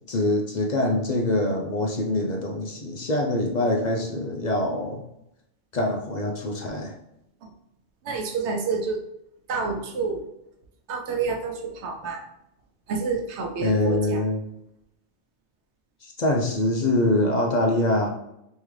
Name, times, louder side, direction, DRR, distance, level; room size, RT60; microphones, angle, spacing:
voice 1, 0.1-5.0 5.7-6.9 13.6-14.4 16.0-18.1, left 1 dB, 50° left, 1 dB, 0.6 m, -24 dB
voice 2, 8.1-9.0 9.5-10.2 10.9-12.2 12.9-14.2, right 4 dB, 90° right, 3 dB, 1.0 m, -28 dB
3.6 x 3.1 x 3.2 m, 0.81 s
omnidirectional pair, 1.1 m